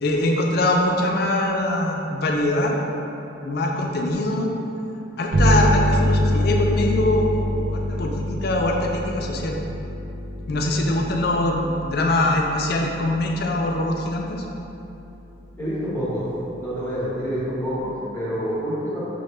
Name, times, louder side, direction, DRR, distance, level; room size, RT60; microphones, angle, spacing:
voice 1, 0.0-2.8 3.4-4.5 5.2-9.6 10.5-14.4, left 1 dB, 50° left, 1 dB, 0.4 m, -23 dB
sound 1, 5.3-14.6, equal, 40° right, 0.4 m, -25 dB
voice 2, 15.6-16.3 16.6-19.1, equal, 10° left, -11 dB, 0.9 m, -27 dB
6.1 x 2.1 x 3.2 m, 2.9 s
head